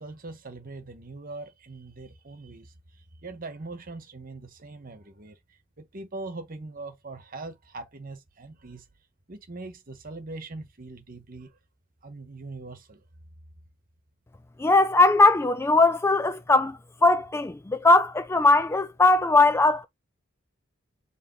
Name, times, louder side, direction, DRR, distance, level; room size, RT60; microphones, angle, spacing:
voice 1, 0.0-5.4 5.8-8.8 9.3-11.6 12.0-13.0, right 3 dB, 45° right, 1.3 m, -41 dB
voice 2, 14.6-19.9, left 2 dB, 10° left, 0.3 m, -20 dB
5.0 x 3.3 x 3.2 m
head